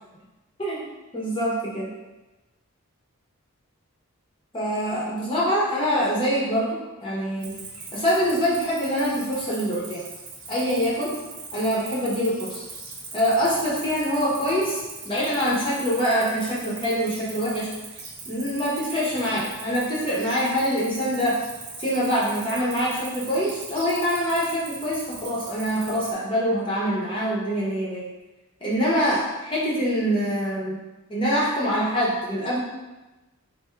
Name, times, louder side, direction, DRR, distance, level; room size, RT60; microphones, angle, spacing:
voice 1, 1.1-1.9 4.5-7.6 7.9-10.0 10.5-11.1 11.5-12.6 13.1-17.7 18.2-21.4 21.8-28.0 28.6-30.8 31.1-32.6, equal, 25° left, -7 dB, 0.8 m, -24 dB
Cricket, 7.4-26.1, right 3 dB, 75° right, 0.8 m, -40 dB
3.4 x 2.6 x 4.4 m, 1.1 s
head